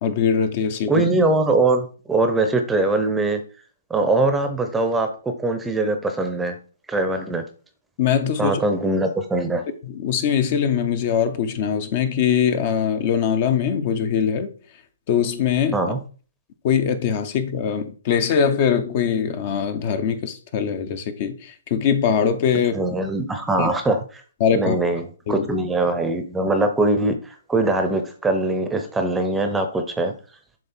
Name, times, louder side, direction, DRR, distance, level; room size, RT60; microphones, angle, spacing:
voice 1, 0.0-1.0 8.0-8.6 9.9-14.5 15.1-15.8 16.6-22.8 23.6-23.7 24.4-24.8 25.3-25.5, left 7 dB, 40° left, 0.8 m, -22 dB
voice 2, 0.9-3.4 3.9-6.6 6.9-7.4 8.4-9.6 15.7-16.0 22.7-24.2 24.5-27.2 27.5-30.1, right 2 dB, 5° right, 0.8 m, -22 dB
7.4 x 3.2 x 4.4 m
figure-of-eight pair, 130°, 0 cm